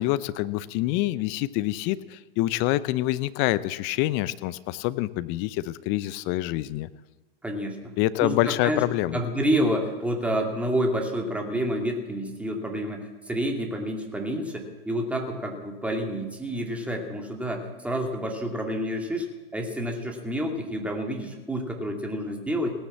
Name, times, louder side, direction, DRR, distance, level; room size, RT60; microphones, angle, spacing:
voice 1, 0.0-6.9 8.0-9.2, left 16 dB, 40° left, 16 dB, 0.8 m, -26 dB
voice 2, 7.4-7.9 8.2-8.8 9.1-19.3 19.5-22.7, equal, 5° right, 2 dB, 2.6 m, -29 dB
17.0 x 10.0 x 7.4 m, 1.2 s
hypercardioid pair, 100°, 29 cm